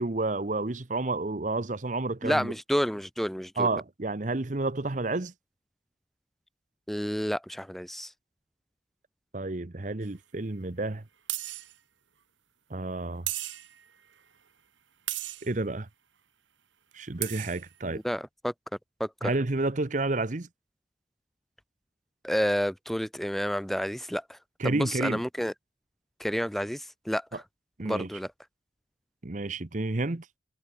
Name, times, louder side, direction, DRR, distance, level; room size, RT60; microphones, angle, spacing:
voice 1, 0.0-2.5 3.6-5.3 9.3-11.0 12.7-13.3 15.4-15.9 16.9-18.0 19.2-20.5 24.6-25.2 27.8-28.1 29.2-30.3, right 2 dB, 40° right, 0.9 m, -30 dB
voice 2, 2.2-3.7 6.9-8.1 17.8-18.5 19.0-19.3 22.2-24.4 24.6-25.5 26.2-27.4 27.8-28.3, equal, ahead, 0.7 m, -30 dB
sound 1, 10.0-10.1 11.3-11.7 13.3-13.8 15.1-15.5 16.9-17.0 17.2-17.7, right 15 dB, 85° right, 1.8 m, -35 dB
head